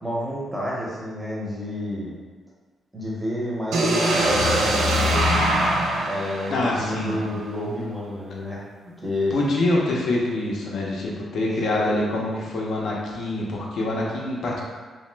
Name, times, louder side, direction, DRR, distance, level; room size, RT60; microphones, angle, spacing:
voice 1, 0.0-2.1 2.9-5.5 6.0-8.6 9.0-9.3, left 1 dB, 5° right, -6 dB, 0.6 m, -30 dB
sound 1, 3.7-7.6, right 1 dB, 85° right, 0.5 m, -22 dB
voice 2, 6.5-7.2 9.3-14.6, left 2 dB, 60° left, -3 dB, 0.6 m, -25 dB
2.9 x 2.0 x 3.2 m, 1.4 s
wide cardioid pair, 165°, 0 cm